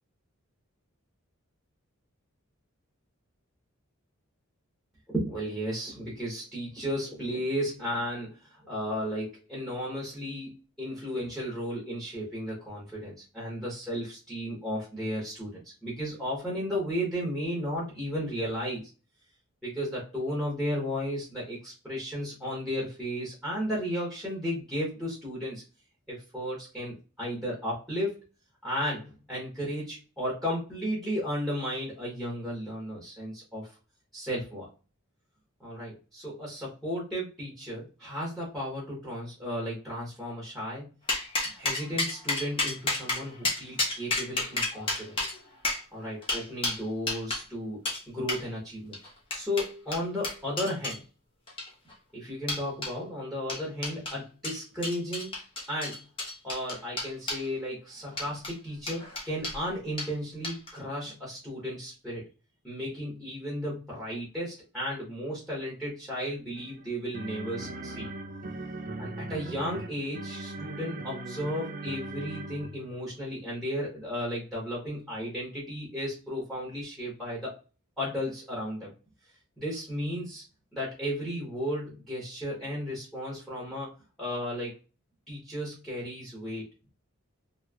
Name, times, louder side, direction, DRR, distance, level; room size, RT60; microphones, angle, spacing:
voice 1, 5.1-18.8 19.6-25.6 26.1-28.2 28.6-33.7 34.1-34.7 35.6-40.9 41.6-45.2 45.9-49.0 49.3-51.0 52.1-55.3 55.7-56.0 56.4-62.2 62.6-68.1 69.0-77.5 78.0-78.9 79.6-80.4 80.7-84.8 85.3-86.6, equal, ahead, -4 dB, 1.1 m, -34 dB
sound 1, 41.1-47.4 47.9-48.0 48.3-48.4 48.9-51.0 51.5-51.9 52.5-52.9 53.5-54.2 54.4-57.5 58.1-58.5 58.9-59.6 60.0-60.1 60.4-60.8, left 2 dB, 25° left, 0.9 m, -31 dB
sound 2, 66.6-73.0, right 2 dB, 40° right, 0.4 m, -39 dB
3.0 x 3.0 x 2.3 m, 0.32 s
head